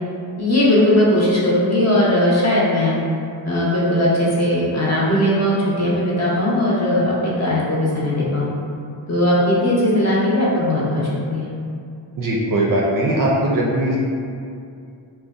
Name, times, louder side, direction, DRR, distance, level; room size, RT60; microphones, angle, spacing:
voice 1, 0.4-2.9 3.4-8.5 9.1-11.5, left 1 dB, 35° left, -7 dB, 0.7 m, -18 dB
voice 2, 12.2-14.0, right 1 dB, 45° right, -3 dB, 0.4 m, -19 dB
2.6 x 2.2 x 2.4 m, 2.4 s
cardioid pair, 65°, 48 cm